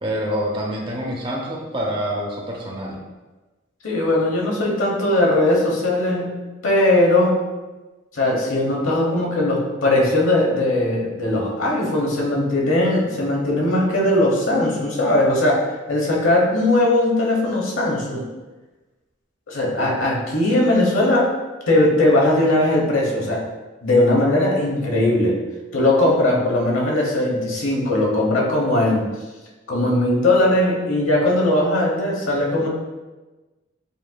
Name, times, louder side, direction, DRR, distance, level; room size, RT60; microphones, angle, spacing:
voice 1, 0.0-3.0, equal, 25° right, -2 dB, 0.6 m, -26 dB
voice 2, 3.8-6.3 6.6-7.4 8.1-18.2 19.5-21.3 21.7-23.5 23.8-25.3 25.7-29.0 29.7-32.7, left 1 dB, 90° left, -2 dB, 1.0 m, -19 dB
6.8 x 2.6 x 2.2 m, 1.2 s
head